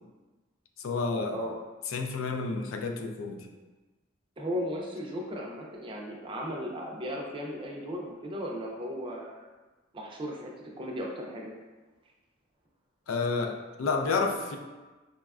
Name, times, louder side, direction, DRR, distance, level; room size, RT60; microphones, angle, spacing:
voice 1, 0.8-1.4 1.9-3.5 13.1-14.6, left 4 dB, 75° left, 5 dB, 0.4 m, -30 dB
voice 2, 4.4-9.5 9.9-11.5, equal, 25° right, -1 dB, 0.4 m, -36 dB
4.1 x 2.2 x 2.3 m, 1.2 s
head